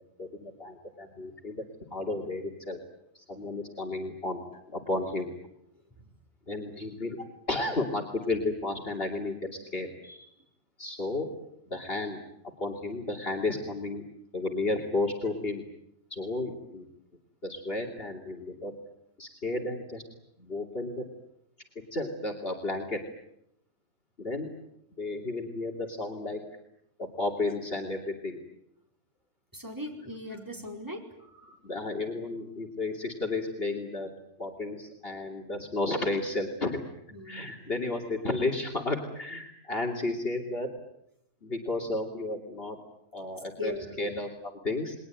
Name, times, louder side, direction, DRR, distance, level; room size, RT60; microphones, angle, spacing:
voice 1, 0.2-2.8 3.1-4.4 4.7-5.3 6.5-7.2 7.5-9.4 9.7-10.3 10.8-11.3 11.7-12.2 12.6-14.0 14.3-15.6 16.1-16.8 17.4-18.7 19.2-20.0 20.4-21.0 21.9-23.0 24.2-24.5 25.0-26.4 27.0-28.4 31.2-34.1 34.4-36.9 37.2-40.7 41.4-42.8 43.1-44.9, left 2 dB, 50° left, 1 dB, 3.1 m, -33 dB
voice 2, 29.5-31.0 37.1-37.4 43.6-44.0, left 1 dB, 15° right, 1 dB, 4.9 m, -38 dB
30.0 x 21.5 x 9.2 m, 0.80 s
omnidirectional pair, 1.3 m